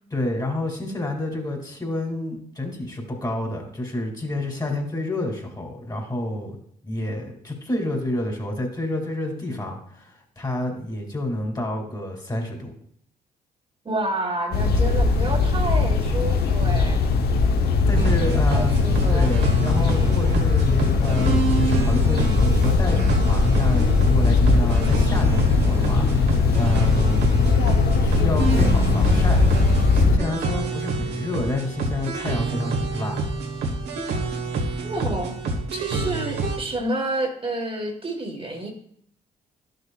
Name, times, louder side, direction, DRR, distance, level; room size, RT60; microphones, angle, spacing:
voice 1, 0.1-6.6 6.8-12.7 17.8-18.8 19.1-27.6 28.0-29.4 29.9-33.2, left 1 dB, 25° left, 1 dB, 2.6 m, -29 dB
voice 2, 13.8-17.0 18.5-19.3 34.8-35.4 35.7-38.7, right 2 dB, 35° right, 1 dB, 1.5 m, -29 dB
sound 1, 14.5-30.2, left 4 dB, 70° left, 0.9 m, -19 dB
sound 2, 17.9-36.6, right 3 dB, 85° right, 1.4 m, -27 dB
11.0 x 6.6 x 2.4 m, 0.66 s
supercardioid pair, 70°, 17 cm